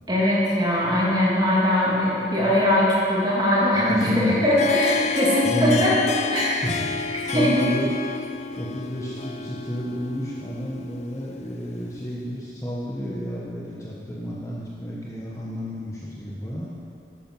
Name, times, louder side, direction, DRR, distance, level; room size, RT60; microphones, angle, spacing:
voice 1, 0.1-5.9 6.3-6.6 7.3-7.5, left 1 dB, 25° right, -6 dB, 2.5 m, -21 dB
voice 2, 3.7-4.4 5.4-5.8 6.6-6.9 7.2-7.9 8.6-16.7, equal, 15° left, -6 dB, 1.2 m, -30 dB
Harp, 4.3-12.0, left 6 dB, 35° left, 0.4 m, -30 dB
11.5 x 9.0 x 6.2 m, 2.6 s
head